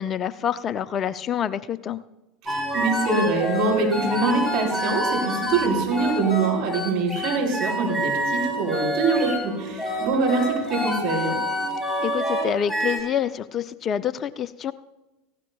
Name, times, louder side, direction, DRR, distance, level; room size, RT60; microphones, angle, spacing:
voice 1, 0.0-2.0 12.0-14.7, left 9 dB, 35° left, 15 dB, 0.5 m, -27 dB
voice 2, 2.4-11.4, right 3 dB, 50° right, -1 dB, 4.7 m, -24 dB
sound 1, 2.5-13.0, equal, ahead, 4.8 m, -27 dB
18.0 x 16.0 x 2.3 m, 1.0 s
hypercardioid pair, 80°, 0 cm